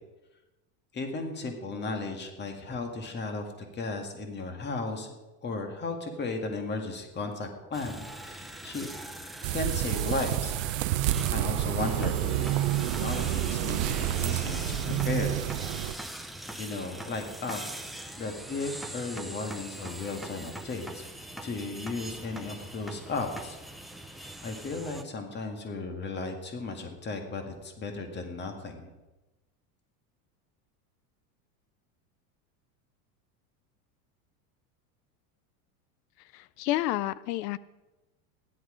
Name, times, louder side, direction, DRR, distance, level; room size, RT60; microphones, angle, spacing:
voice 1, 0.9-5.1 5.4-8.9 9.5-10.6 11.0-12.7 13.0-15.5 16.6-17.7 18.2-21.0 21.3-23.6 24.4-28.9, left 3 dB, 20° left, 5 dB, 1.9 m, -35 dB
sound 1, 7.7-25.0, right 1 dB, ahead, 0.4 m, -42 dB
sound 2, 9.4-15.9, right 14 dB, 60° right, 0.7 m, -29 dB
voice 2, 36.2-37.6, left 15 dB, 90° left, 19 dB, 0.6 m, -30 dB
15.0 x 11.0 x 5.0 m, 1.1 s
supercardioid pair, 140°, 47 cm